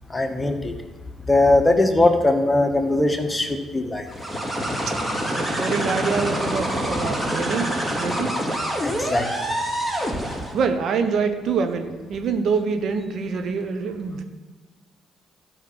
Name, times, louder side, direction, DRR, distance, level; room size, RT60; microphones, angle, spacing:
voice 1, 0.1-0.7 1.3-4.1 8.8-9.3, left 2 dB, 15° left, 6 dB, 1.5 m, -20 dB
sound 1, 4.1-10.6, equal, 5° right, 3.2 m, -26 dB
voice 2, 5.4-7.7 8.0-8.3 10.3-14.2, right 5 dB, 60° right, 6 dB, 1.2 m, -25 dB
13.0 x 5.7 x 6.2 m, 1.3 s
hypercardioid pair, 45°, 0 cm